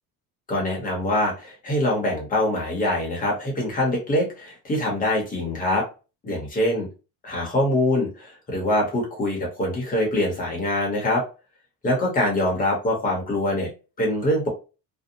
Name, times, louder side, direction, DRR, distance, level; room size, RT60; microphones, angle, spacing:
voice 1, 0.5-5.8 6.2-6.9 7.2-11.2 11.8-13.7 14.0-14.5, left 1 dB, 20° left, -1 dB, 0.8 m, -24 dB
2.6 x 2.0 x 2.6 m, 0.32 s
cardioid pair, 180°, 38 cm